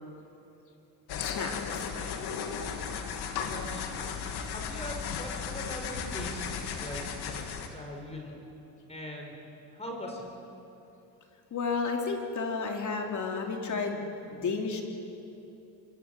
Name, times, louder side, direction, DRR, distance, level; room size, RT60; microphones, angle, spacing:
sound 1, 1.1-7.7, left 7 dB, 70° left, 2.6 m, -35 dB
voice 1, 1.2-1.9 11.5-14.8, left 4 dB, 45° left, 2 dB, 3.6 m, -32 dB
voice 2, 3.5-4.1 4.5-8.5 8.9-9.4 9.7-10.3, equal, 15° left, 1 dB, 4.6 m, -41 dB
25.0 x 23.5 x 7.8 m, 2.8 s
cardioid pair, 120°, 40 cm